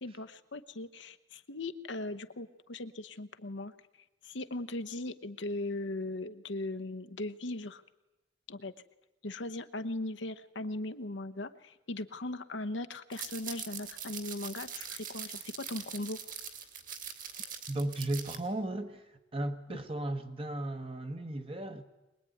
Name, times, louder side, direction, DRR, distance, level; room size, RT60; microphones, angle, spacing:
voice 1, 0.0-3.7 4.2-7.8 8.5-8.7 9.2-16.2, left 2 dB, 65° left, 1.0 m, -39 dB
sound 1, 13.1-18.4, right 7 dB, 45° right, 2.5 m, -42 dB
voice 2, 17.7-19.1 19.3-21.8, right 1 dB, 30° right, 1.3 m, -35 dB
23.5 x 20.5 x 9.3 m
head